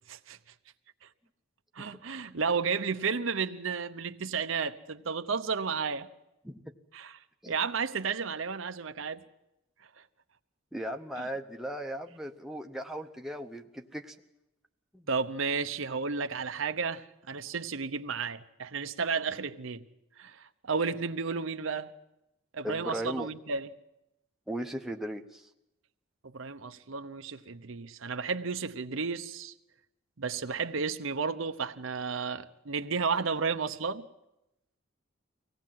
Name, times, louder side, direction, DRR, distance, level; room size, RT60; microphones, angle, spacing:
voice 1, 1.7-6.1 6.9-7.2 7.5-9.2 11.2-11.3 15.1-19.8 20.2-21.9 22.5-23.7 26.2-29.5 30.2-34.0, right 5 dB, 70° right, 0.8 m, -32 dB
voice 2, 10.7-14.1 14.9-15.1 22.6-23.3 24.5-25.5, equal, ahead, 0.8 m, -37 dB
24.5 x 18.0 x 7.6 m
head